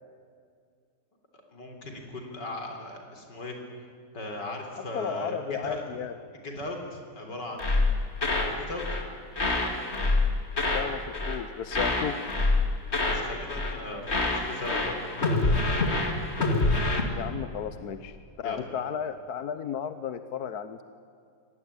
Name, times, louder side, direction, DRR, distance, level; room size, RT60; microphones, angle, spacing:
voice 1, 1.5-3.6 4.1-5.9 6.4-7.9 8.4-8.8 13.1-15.7 18.4-18.6, left 1 dB, 85° left, 3 dB, 4.3 m, -38 dB
voice 2, 4.9-6.1 10.7-12.2 17.1-20.8, left 8 dB, 65° left, 11 dB, 1.4 m, -34 dB
sound 1, 7.6-8.5 8.8-9.1 9.4-10.9 11.1-11.4 11.7-13.2 13.5-13.8 14.1-17.0, left 2 dB, 40° left, 2.6 m, -26 dB
25.5 x 18.5 x 9.9 m, 2.2 s
omnidirectional pair, 1.8 m